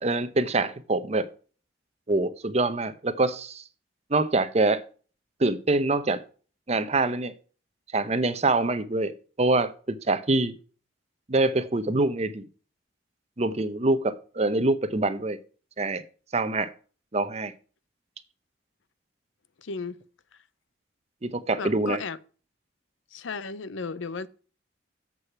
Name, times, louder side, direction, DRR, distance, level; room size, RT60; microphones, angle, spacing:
voice 1, 0.0-1.3 2.1-3.6 4.1-4.8 5.4-6.2 6.7-7.3 7.9-9.1 9.4-10.5 11.3-12.5 13.4-15.4 15.8-16.0 16.3-16.7 17.1-17.5 21.2-22.0, right 2 dB, 35° right, 0.7 m, -25 dB
voice 2, 19.6-20.0 21.6-22.2 23.1-24.3, left 4 dB, 80° left, 0.6 m, -34 dB
7.7 x 6.5 x 5.8 m
head